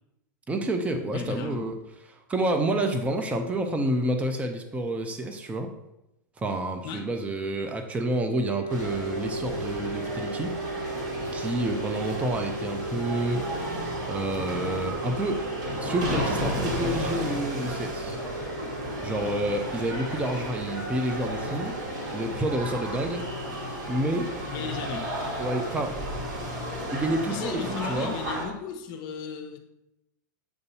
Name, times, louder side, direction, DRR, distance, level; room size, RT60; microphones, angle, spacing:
voice 1, 0.5-1.8 2.3-5.7 6.4-10.5 11.3-15.4 15.8-18.2 19.0-21.7 22.1-23.3 23.6-24.3 25.4-26.0 26.9-28.1, right 1 dB, 15° right, 5 dB, 0.6 m, -29 dB
voice 2, 1.1-1.7 6.8-7.1 24.5-25.1 27.3-29.6, left 6 dB, 45° left, 4 dB, 0.9 m, -35 dB
sound 1, 8.4-25.8, right 3 dB, 80° right, 1.2 m, -38 dB
sound 2, 8.7-28.5, equal, 40° right, 2.2 m, -33 dB
7.9 x 2.7 x 5.4 m, 0.88 s
hypercardioid pair, 120°, 10 cm